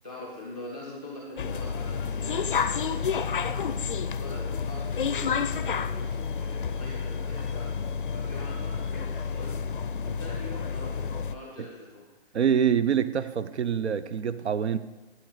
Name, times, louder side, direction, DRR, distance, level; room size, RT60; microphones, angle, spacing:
voice 1, 0.0-3.5 3.8-7.7 8.1-9.6 9.9-12.4, left 2 dB, 10° right, 0.5 m, -43 dB
sound 1, 1.4-11.3, left 6 dB, 50° left, 0.5 m, -30 dB
voice 2, 12.3-14.8, right 8 dB, 80° right, 0.7 m, -25 dB
12.0 x 8.0 x 4.9 m
hypercardioid pair, 165°, 33 cm